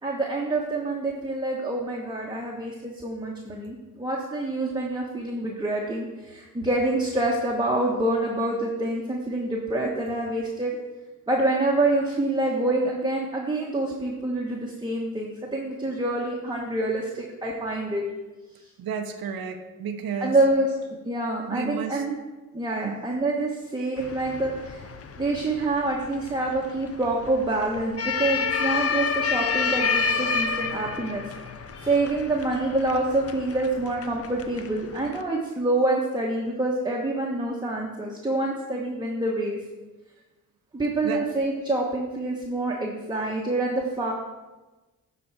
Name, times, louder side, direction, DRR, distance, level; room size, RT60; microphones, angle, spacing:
voice 1, 0.0-10.8 11.3-18.1 20.2-20.7 21.1-22.2 22.5-24.9 25.2-31.2 31.7-39.6 40.7-44.1, right 2 dB, 10° right, -2 dB, 1.1 m, -26 dB
voice 2, 18.8-20.3 21.5-22.0 22.8-23.0 41.0-41.3, right 6 dB, 85° right, 6 dB, 0.8 m, -32 dB
sound 1, 24.0-35.2, left 5 dB, 45° left, 0.6 m, -30 dB
10.5 x 4.0 x 4.7 m, 1.1 s
cardioid pair, 75°, 35 cm